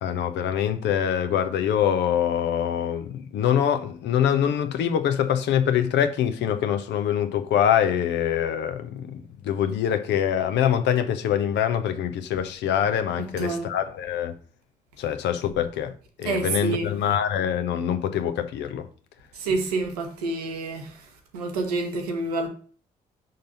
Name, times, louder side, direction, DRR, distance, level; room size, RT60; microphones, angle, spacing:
voice 1, 0.0-14.3 15.0-15.9 16.2-18.8, left 9 dB, 65° left, 0.8 m, -24 dB
voice 2, 13.2-13.7 16.2-16.9 19.3-22.5, right 3 dB, 85° right, 0.9 m, -28 dB
5.5 x 3.9 x 5.4 m
figure-of-eight pair, 40°, 20 cm